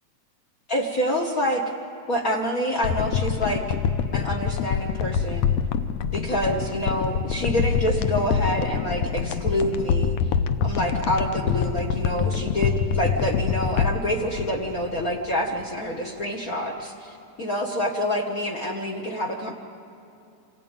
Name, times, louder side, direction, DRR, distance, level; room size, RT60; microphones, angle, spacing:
voice 1, 0.7-1.6 2.1-3.6 4.1-5.5 6.1-10.1 10.6-19.5, equal, 60° left, 0 dB, 0.9 m, -27 dB
sound 1, 2.8-15.3 15.6-15.7, left 7 dB, 80° left, 1.5 m, -25 dB
26.5 x 16.0 x 8.9 m, 2.6 s
omnidirectional pair, 3.6 m